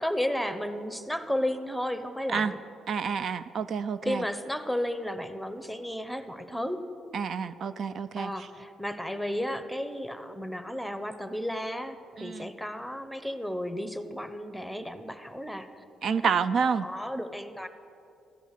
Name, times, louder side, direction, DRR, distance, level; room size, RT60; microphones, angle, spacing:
voice 1, 0.0-2.6 4.0-6.8 8.2-15.8 16.2-16.3 16.8-17.7, equal, ahead, 10 dB, 0.9 m, -33 dB
voice 2, 2.9-4.2 7.1-8.3 12.2-12.5 16.0-16.9, right 6 dB, 60° right, 13 dB, 0.3 m, -28 dB
14.0 x 10.0 x 6.6 m, 2.6 s
cardioid pair, 90°, 0 cm